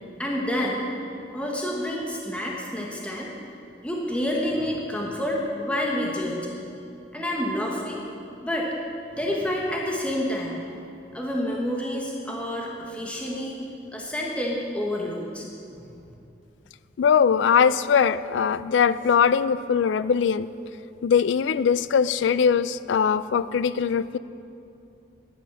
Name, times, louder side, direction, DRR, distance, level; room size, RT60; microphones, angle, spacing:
voice 1, 0.2-0.9 1.3-3.3 3.8-6.5 7.1-8.0 8.4-8.7 9.1-10.8 11.1-13.6 13.9-15.5 15.8-15.9, left 1 dB, 5° left, -3 dB, 1.1 m, -28 dB
voice 2, 17.0-20.5 21.0-24.2, left 7 dB, 85° left, 16 dB, 0.3 m, -21 dB
11.5 x 9.3 x 5.8 m, 2.7 s
head